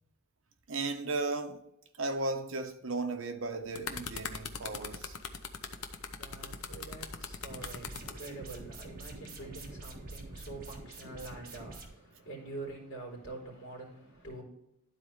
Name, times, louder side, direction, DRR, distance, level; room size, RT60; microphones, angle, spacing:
voice 1, 0.7-1.6 2.0-5.2, right 3 dB, 65° right, 0.9 m, -35 dB
sound 1, 3.4-8.2 9.0-9.3, left 5 dB, 75° left, 0.8 m, -40 dB
voice 2, 5.5-14.4, right 2 dB, 60° left, 3.2 m, -46 dB
sound 2, 7.5-11.9, right 2 dB, 40° right, 1.4 m, -46 dB
12.0 x 4.3 x 3.2 m
head